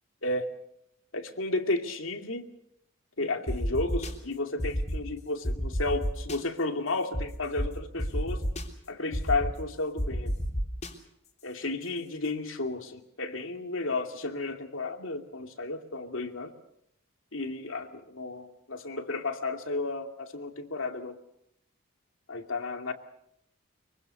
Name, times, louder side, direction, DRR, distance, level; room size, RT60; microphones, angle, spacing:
voice 1, 1.1-2.5 3.2-8.4 8.9-10.4 11.4-16.5 17.3-21.2 22.3-22.9, left 2 dB, 70° left, 5 dB, 2.5 m, -33 dB
sound 1, 3.5-4.1 4.6-5.0 5.4-6.4 7.1-7.2 7.6-7.7 8.0-8.6 9.1-9.5 10.0-10.9, equal, 35° left, 3.3 m, -29 dB
24.5 x 24.0 x 6.8 m, 0.75 s
head